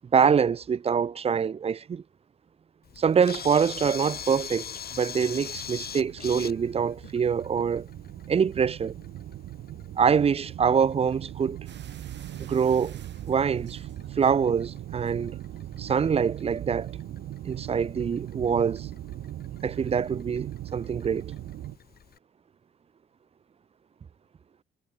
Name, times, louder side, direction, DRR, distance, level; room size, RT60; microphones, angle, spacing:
voice 1, 0.1-2.0 3.0-7.9 8.3-8.9 10.0-11.6 12.4-13.0 13.3-13.8 14.2-15.4 15.8-17.0 17.4-18.9 19.6-21.3, right 6 dB, 30° right, 0.5 m, -25 dB
Camera, 2.8-22.2, left 8 dB, 50° left, 2.8 m, -44 dB
sound 1, 5.3-21.8, right 13 dB, 80° right, 4.2 m, -39 dB
sound 2, 11.7-14.5 14.9-15.3 16.0-16.2 16.5-16.6, right 9 dB, 60° right, 3.6 m, -53 dB
cardioid pair, 90°, 20 cm